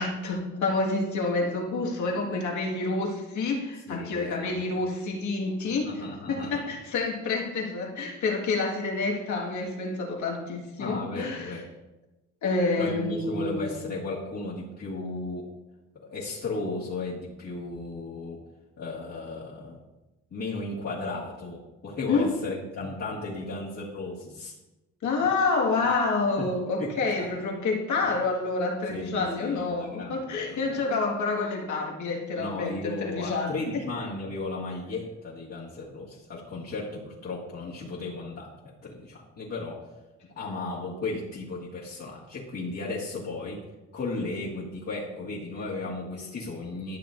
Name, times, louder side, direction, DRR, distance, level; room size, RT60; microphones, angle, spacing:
voice 1, 0.0-6.0 6.3-11.6 12.4-13.7 22.1-22.3 25.0-33.8, left 3 dB, 70° left, -1 dB, 1.8 m, -28 dB
voice 2, 3.9-4.7 5.8-6.6 10.8-11.7 12.8-15.5 16.0-18.4 18.8-19.8 20.3-24.5 26.4-26.5 26.8-27.3 28.9-30.8 32.4-39.8 40.3-43.6 43.9-47.0, left 3 dB, 55° left, -7 dB, 1.9 m, -35 dB
12.5 x 6.7 x 2.6 m, 1.1 s
cardioid pair, 90°, 30 cm